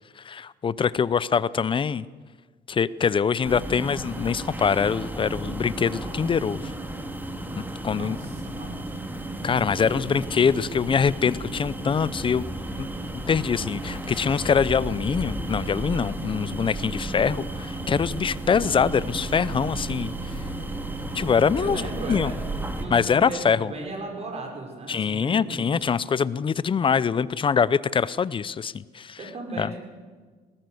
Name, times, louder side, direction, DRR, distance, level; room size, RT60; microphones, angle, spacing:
voice 1, 0.2-2.1 2.7-6.7 7.6-8.2 9.4-12.5 12.8-12.9 13.3-20.1 21.1-21.8 22.1-22.3 22.9-23.7 24.9-29.2 29.6-29.7, left 6 dB, 30° left, 19 dB, 0.6 m, -24 dB
sound 1, 3.4-22.9, right 2 dB, 10° right, 2.3 m, -33 dB
voice 2, 7.9-8.7 9.6-10.3 21.6-22.4 22.8-25.9 29.2-29.8, right 2 dB, 40° right, 2 dB, 5.9 m, -36 dB
20.0 x 17.5 x 7.9 m, 1.5 s
cardioid pair, 110°, 17 cm